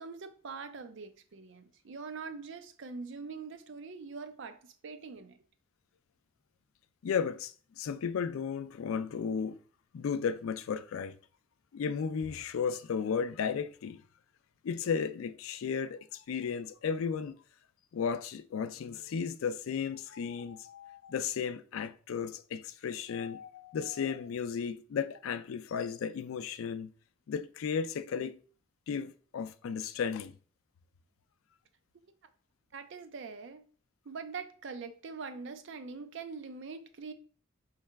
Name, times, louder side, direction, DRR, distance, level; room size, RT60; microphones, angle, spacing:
voice 1, 0.0-5.4 32.7-33.7 34.1-37.1, right 4 dB, 60° right, 0.5 m, -43 dB
voice 2, 7.0-9.6 9.9-11.2 11.7-14.0 14.6-17.4 17.9-26.9 27.3-28.4 28.9-30.3, left 6 dB, 80° left, 0.4 m, -34 dB
4.6 x 3.2 x 3.3 m
head